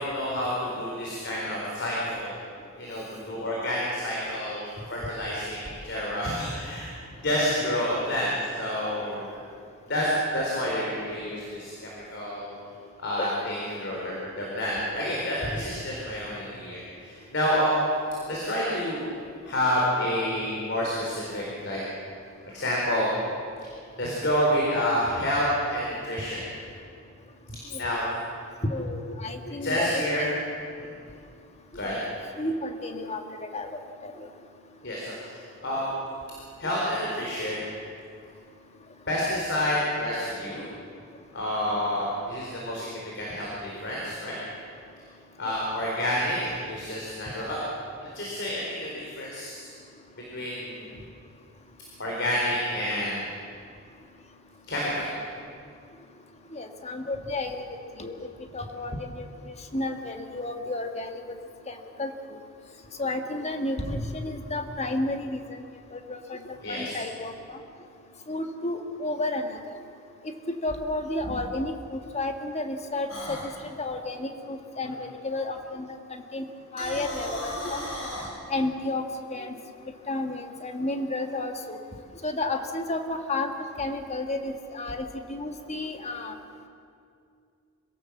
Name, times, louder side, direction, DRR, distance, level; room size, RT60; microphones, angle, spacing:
voice 1, 0.0-2.3 2.8-6.9 7.2-9.3 9.8-12.5 13.0-17.8 18.3-19.1 19.4-21.8 22.4-23.1 24.0-26.4 27.7-28.1 29.5-30.3 30.8-30.9 31.7-32.0 34.8-35.9 36.6-37.7 39.1-40.6 41.3-44.4 45.4-47.6 48.1-49.7 50.1-50.9 52.0-53.3 54.7-55.1 66.6-66.9, equal, 55° left, -4 dB, 4.4 m, -29 dB
voice 2, 28.7-30.3 31.8-31.9 32.4-34.3 36.6-36.7 45.5-45.6 56.5-57.6 58.0-58.3 58.5-61.2 61.7-62.4 63.0-65.6 65.9-67.6 68.3-69.8 70.6-73.5 73.8-76.4 76.7-77.8 78.5-79.0 79.3-79.6 80.1-81.8 82.2-86.3, left 2 dB, 30° left, 5 dB, 1.7 m, -32 dB
sound 1, 73.1-73.5 76.6-78.3, left 1 dB, 75° left, 6.4 m, -35 dB
26.0 x 17.0 x 7.3 m, 2.4 s
head